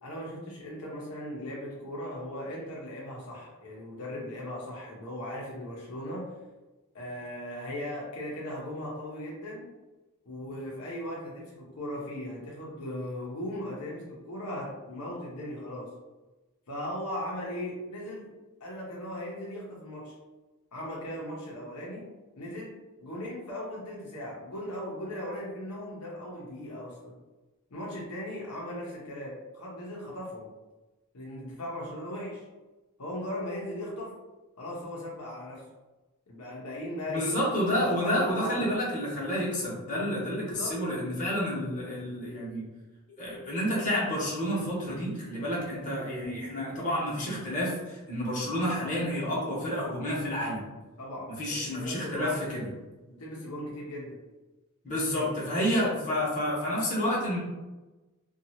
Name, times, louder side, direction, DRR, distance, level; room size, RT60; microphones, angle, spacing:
voice 1, 0.0-6.3 6.9-9.7 10.3-15.9 16.7-18.3 18.6-20.1 20.7-22.0 22.4-22.7 23.0-27.1 27.7-30.5 31.1-32.5 33.0-34.1 34.6-35.6 36.3-37.3 38.0-38.7 40.4-40.8 51.0-52.4 53.1-54.2, left 1 dB, 80° left, -3 dB, 0.7 m, -38 dB
voice 2, 37.1-42.6 43.2-50.6 51.4-52.7 54.8-57.4, equal, 35° left, -6 dB, 1.0 m, -29 dB
2.7 x 2.3 x 2.8 m, 1.1 s
head